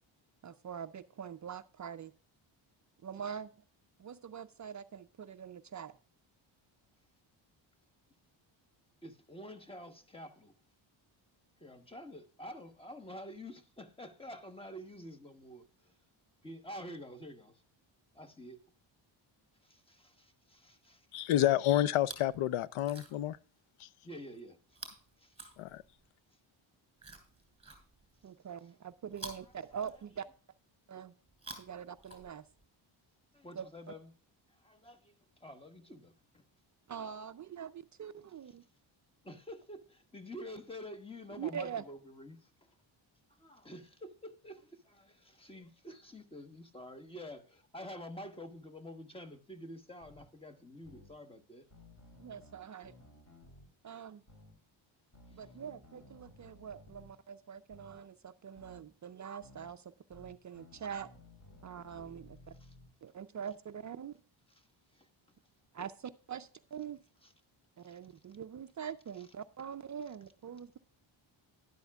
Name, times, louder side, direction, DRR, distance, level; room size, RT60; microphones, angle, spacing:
voice 1, 0.4-2.1 3.0-3.5 4.0-5.9 28.2-30.3 30.9-31.1 31.6-32.4 33.6-33.7 36.9-38.6 41.4-41.8 52.2-52.9 53.8-54.2 55.3-61.1 61.6-62.4 63.0-64.1 65.7-67.0 67.8-70.8, right 8 dB, 40° right, 0.4 m, -44 dB
voice 2, 9.0-10.5 11.6-15.9 16.4-17.6 18.1-18.6 19.6-21.1 24.0-24.9 25.2-25.5 33.3-34.1 34.6-35.1 35.4-36.4 39.2-42.5 43.4-51.7 55.3-55.4 62.6-62.7 64.5-64.7 64.9-65.1 67.2-67.3, left 1 dB, 10° left, 1.1 m, -48 dB
voice 3, 21.1-23.4 23.8-23.9 25.6-25.8, left 12 dB, 80° left, 0.6 m, -29 dB
Chewing mastication, 21.9-22.4 22.7-23.4 24.7-26.1 27.0-28.2 29.1-30.4 31.3-32.7 33.6-33.7, right 2 dB, 10° right, 3.1 m, -51 dB
sound 1, 50.0-50.2 50.8-51.1 51.7-53.7 54.3-54.5 55.1-57.1 57.7-58.0 58.6-58.8 59.4-59.7 60.1-62.9, left 2 dB, 35° left, 3.5 m, -57 dB
12.5 x 11.0 x 2.3 m
cardioid pair, 140°, 49 cm